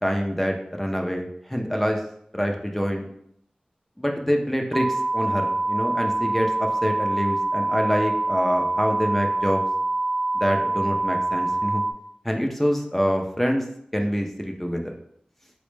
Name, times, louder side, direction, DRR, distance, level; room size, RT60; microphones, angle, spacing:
voice 1, 0.0-2.0 2.3-3.1 4.0-9.6 10.3-11.8 12.2-13.6 13.9-14.9, equal, 5° left, 2 dB, 0.4 m, -25 dB
sound 1, 4.7-11.9, right 2 dB, 50° right, 0.6 m, -25 dB
3.9 x 2.1 x 3.2 m, 0.71 s
wide cardioid pair, 60°, 3 cm